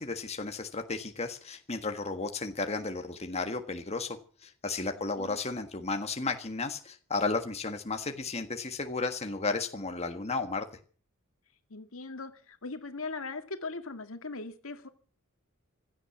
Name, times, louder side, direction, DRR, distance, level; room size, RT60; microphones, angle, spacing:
voice 1, 0.0-4.2 4.4-10.6, left 3 dB, 30° left, 6 dB, 1.5 m, -33 dB
voice 2, 11.7-14.9, left 3 dB, 80° left, 8 dB, 2.0 m, -39 dB
16.0 x 12.0 x 7.1 m, 0.43 s
head